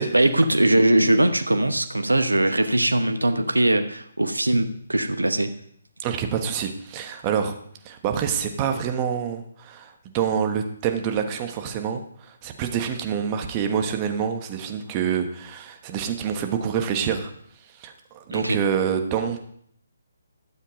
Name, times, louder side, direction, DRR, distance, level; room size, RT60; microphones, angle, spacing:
voice 1, 0.1-5.5 18.3-18.6, right 1 dB, 90° right, 9 dB, 0.9 m, -21 dB
voice 2, 6.0-7.6 7.8-17.3 17.7-19.4, right 7 dB, 25° right, 5 dB, 1.3 m, -27 dB
12.0 x 7.5 x 5.2 m, 0.65 s
figure-of-eight pair, 140°, 0 cm